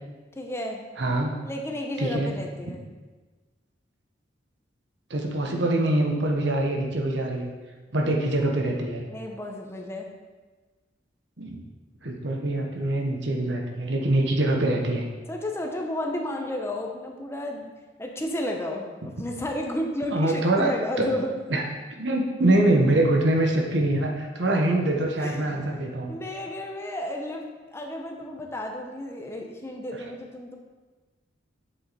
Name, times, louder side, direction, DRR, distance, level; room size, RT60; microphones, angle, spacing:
voice 1, 0.4-0.8 1.4-2.8 9.1-10.1 15.3-17.7 18.0-21.3 25.2-25.7 26.1-30.6, left 1 dB, 15° left, 1 dB, 0.8 m, -32 dB
voice 2, 1.0-1.3 2.0-2.3 5.1-7.5 7.9-9.1 11.4-11.6 12.0-15.1 20.1-20.7 21.0-21.1 21.5-21.6 22.0-26.1, right 1 dB, 70° right, 1 dB, 1.3 m, -24 dB
7.7 x 7.6 x 4.2 m, 1.3 s
head